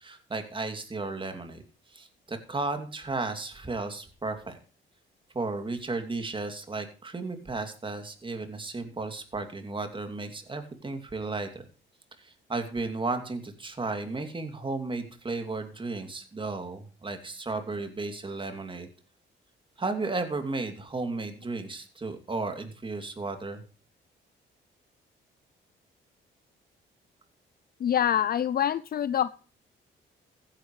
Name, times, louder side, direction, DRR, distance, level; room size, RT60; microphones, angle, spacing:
voice 1, 0.0-1.6 1.9-4.6 5.3-11.6 12.2-18.9 19.8-23.6, right 3 dB, 25° right, 6 dB, 2.8 m, -34 dB
voice 2, 27.8-29.3, left 10 dB, 50° left, 16 dB, 0.6 m, -25 dB
15.0 x 10.5 x 3.2 m, 0.38 s
cardioid pair, 90°, 20 cm